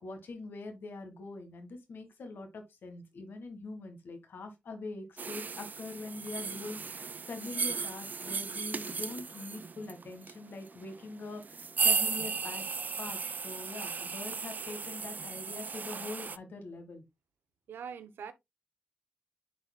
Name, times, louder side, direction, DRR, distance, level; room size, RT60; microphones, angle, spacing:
voice 1, 0.0-12.7 13.0-17.0, left 3 dB, 80° left, 1.7 m, -43 dB
sound 1, 5.2-16.4, right 5 dB, 55° right, 0.4 m, -35 dB
voice 2, 17.7-18.3, right 7 dB, 90° right, 0.8 m, -42 dB
10.5 x 4.1 x 2.2 m
supercardioid pair, 45°, 4 cm